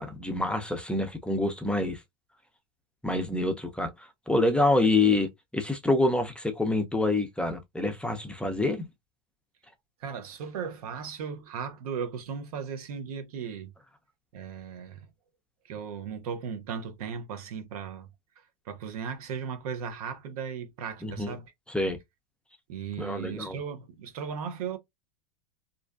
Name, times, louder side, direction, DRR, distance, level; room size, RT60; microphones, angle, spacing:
voice 1, 0.0-2.0 3.0-3.9 4.3-8.9 21.0-21.3 21.7-22.0 23.0-23.6, left 2 dB, 5° left, 0.5 m, -26 dB
voice 2, 10.0-13.7 14.3-15.1 15.6-18.1 18.7-21.5 22.7-24.8, right 7 dB, 75° right, 0.7 m, -36 dB
2.5 x 2.1 x 2.3 m
hypercardioid pair, 100°, 19 cm